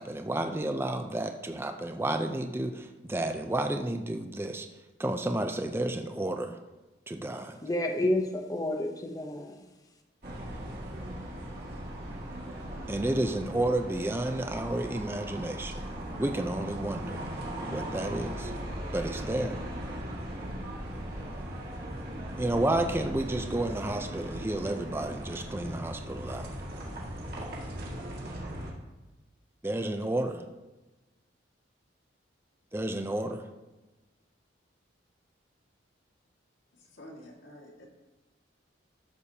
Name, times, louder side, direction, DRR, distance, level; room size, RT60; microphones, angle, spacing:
voice 1, 0.0-4.7 5.0-6.6 7.1-7.6 12.9-15.8 16.2-17.2 17.7-18.5 18.9-19.6 22.4-26.5 29.6-30.5 32.7-33.4, right 1 dB, 10° right, 5 dB, 0.4 m, -31 dB
voice 2, 7.6-9.6, left 1 dB, 20° left, 3 dB, 0.8 m, -30 dB
sound 1, 10.2-28.7, equal, 55° right, 2.1 m, -38 dB
voice 3, 36.7-37.9, equal, 75° left, -1 dB, 2.0 m, -49 dB
13.0 x 6.8 x 2.8 m, 1.1 s
head